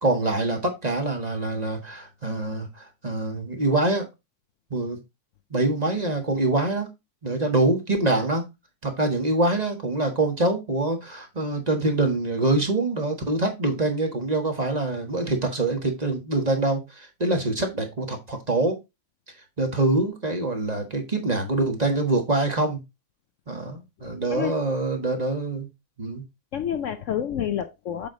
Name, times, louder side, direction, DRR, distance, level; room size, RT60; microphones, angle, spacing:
voice 1, 0.0-4.1 4.7-5.0 5.5-6.9 7.2-8.4 8.8-18.8 19.6-22.8 23.5-25.7 26.0-26.2, right 2 dB, 30° right, 1.5 m, -25 dB
voice 2, 24.0-24.5 26.5-28.1, left 9 dB, 65° left, 0.9 m, -29 dB
7.5 x 4.8 x 3.8 m
omnidirectional pair, 1.6 m